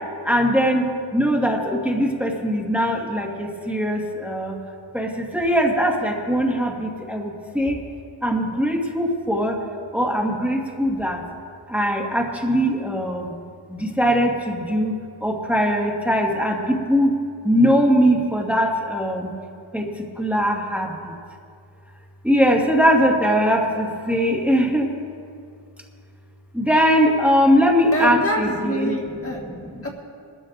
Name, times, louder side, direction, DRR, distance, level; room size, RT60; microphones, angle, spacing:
voice 1, 0.2-4.6 4.9-7.8 8.2-9.6 9.9-11.2 11.7-13.3 13.7-14.9 15.2-17.2 17.4-19.3 19.7-21.1 22.2-24.9 26.5-28.9 29.4-29.7, equal, 5° right, -1 dB, 1.7 m, -21 dB
voice 2, 27.9-29.4 29.8-29.9, equal, 30° left, -1 dB, 1.6 m, -26 dB
23.0 x 13.0 x 2.6 m, 2.3 s
wide cardioid pair, 75°, 47 cm